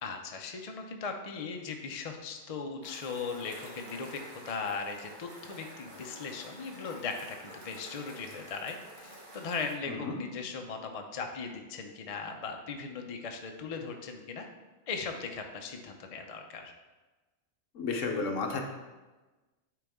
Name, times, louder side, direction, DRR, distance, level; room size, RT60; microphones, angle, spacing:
voice 1, 0.0-14.5 14.9-16.7, left 5 dB, 45° left, 4 dB, 0.4 m, -38 dB
sound 1, 2.8-9.7, right 1 dB, 35° right, 1.2 m, -49 dB
voice 2, 9.9-10.2 17.7-18.6, left 4 dB, 70° left, 3 dB, 1.2 m, -32 dB
9.1 x 3.9 x 3.5 m, 1.2 s
omnidirectional pair, 1.4 m